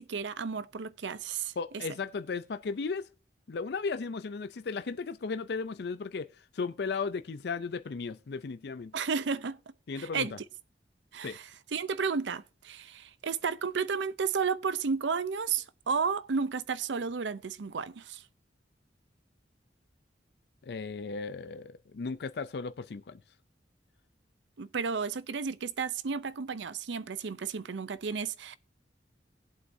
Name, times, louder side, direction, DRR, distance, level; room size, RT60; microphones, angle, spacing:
voice 1, 0.0-1.5 8.9-9.6 10.0-10.3 11.1-18.2 24.6-28.6, right 5 dB, 80° right, 0.6 m, -32 dB
voice 2, 1.6-3.1 3.5-8.9 9.9-10.4 11.2-11.4 20.6-23.2, left 4 dB, 60° left, 0.4 m, -35 dB
18.5 x 7.9 x 2.7 m
head